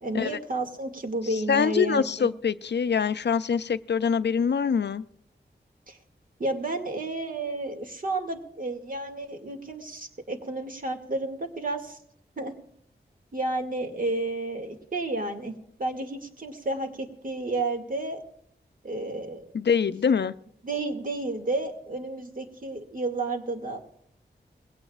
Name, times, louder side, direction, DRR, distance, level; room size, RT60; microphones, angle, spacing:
voice 1, 0.0-2.3 5.9-6.0 6.4-12.0 12.4-12.5 13.3-15.5 15.8-18.2 18.8-19.6 20.6-23.8, right 2 dB, 45° right, 2.2 m, -31 dB
voice 2, 1.3-5.0 19.5-20.3, left 6 dB, 70° left, 0.5 m, -24 dB
21.5 x 17.0 x 2.4 m
wide cardioid pair, 95°, 19 cm